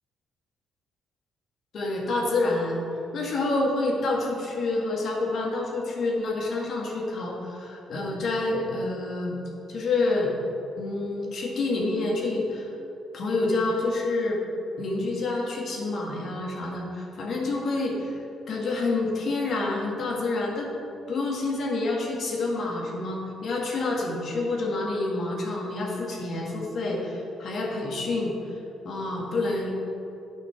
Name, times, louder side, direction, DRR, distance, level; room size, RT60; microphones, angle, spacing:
voice 1, 1.7-2.8 3.1-9.4 9.7-10.3 10.8-12.7 13.1-14.4 14.8-20.7 21.1-28.6 28.8-29.7, left 2 dB, 60° left, -2 dB, 1.8 m, -28 dB
8.5 x 5.8 x 6.0 m, 2.8 s
cardioid pair, 90°, 0 cm